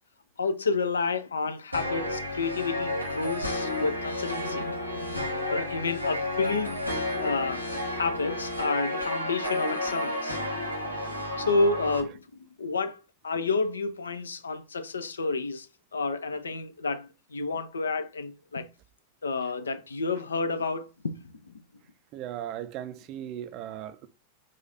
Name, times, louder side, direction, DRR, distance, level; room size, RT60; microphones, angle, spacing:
voice 1, 0.4-6.8 7.2-10.4 11.4-12.2 12.6-15.7 15.9-18.7 19.2-21.5, left 4 dB, 70° left, 0.5 m, -30 dB
sound 1, 1.7-12.0, left 1 dB, 90° right, 1.3 m, -31 dB
voice 2, 22.1-24.1, right 11 dB, 40° right, 0.4 m, -37 dB
4.1 x 2.5 x 3.8 m
figure-of-eight pair, 90°, 0 cm